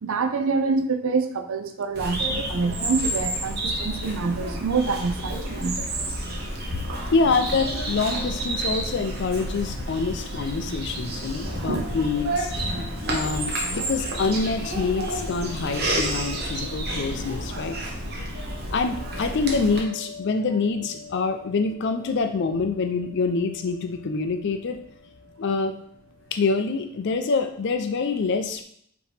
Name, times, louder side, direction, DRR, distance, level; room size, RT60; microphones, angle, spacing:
voice 1, 0.0-5.8 6.8-6.9 11.6-12.0 18.2-18.3, right 4 dB, 65° right, 7 dB, 0.5 m, -26 dB
Bird vocalization bird call bird song, 1.9-19.8, right 1 dB, 45° right, 0.9 m, -30 dB
sound 1, 7.1-26.7, left 2 dB, 65° left, 0.9 m, -46 dB
voice 2, 7.1-12.5 13.1-17.8 18.7-24.8 25.4-25.7 26.3-28.6, left 4 dB, 50° left, 7 dB, 0.4 m, -26 dB
5.1 x 2.9 x 3.2 m, 0.66 s
head